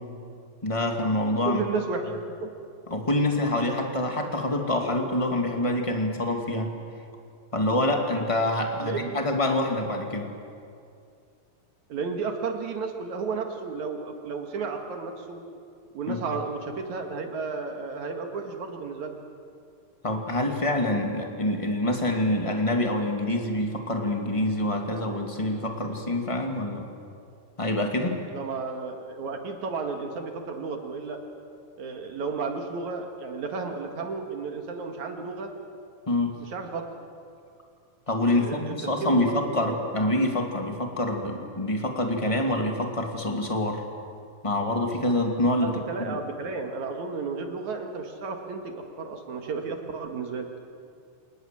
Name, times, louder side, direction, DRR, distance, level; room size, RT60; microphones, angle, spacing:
voice 1, 0.6-1.6 2.9-6.7 7.5-10.3 16.1-16.2 20.0-26.9 27.6-28.2 36.1-36.3 38.1-43.8 44.4-46.2, left 1 dB, 10° left, 2 dB, 1.5 m, -26 dB
voice 2, 1.5-2.5 8.8-9.2 11.9-15.4 15.9-19.2 28.3-31.2 31.8-35.5 36.5-36.9 38.3-38.7 39.0-39.8 45.6-50.5, right 4 dB, 60° right, 4 dB, 2.9 m, -33 dB
28.5 x 19.5 x 7.6 m, 2.4 s
omnidirectional pair, 4.1 m